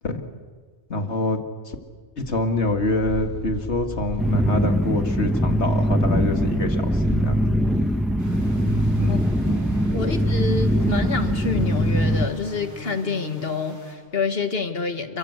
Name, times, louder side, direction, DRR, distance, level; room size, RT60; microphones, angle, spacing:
voice 1, 0.9-1.8 2.2-7.5 9.0-9.2 10.0-10.1, left 2 dB, 80° left, 5 dB, 2.5 m, -26 dB
Purr, 2.2-9.2, left 1 dB, 75° right, 6.8 m, -35 dB
sound 1, 4.2-12.3, equal, ahead, 1.1 m, -22 dB
sound 2, 8.2-13.9, right 1 dB, 90° right, 6.6 m, -40 dB
voice 2, 9.4-15.2, left 4 dB, 60° left, 8 dB, 1.9 m, -28 dB
29.0 x 22.5 x 8.2 m, 1.5 s
omnidirectional pair, 1.1 m